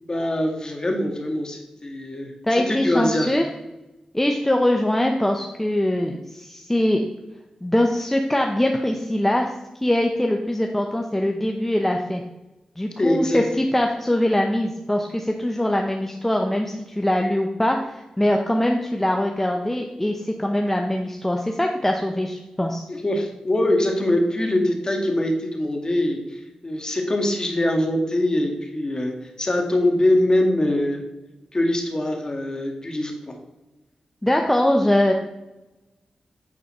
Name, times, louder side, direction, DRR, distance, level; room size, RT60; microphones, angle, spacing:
voice 1, 0.0-3.3 13.0-13.4 22.9-31.0 31.5-33.3, left 1 dB, 35° left, 2 dB, 1.7 m, -23 dB
voice 2, 2.4-3.4 4.1-7.0 7.6-9.5 9.8-12.2 12.8-22.8 34.2-35.1, left 1 dB, 10° left, 2 dB, 0.7 m, -22 dB
8.7 x 4.1 x 4.3 m, 1.0 s
cardioid pair, 55°, 2 cm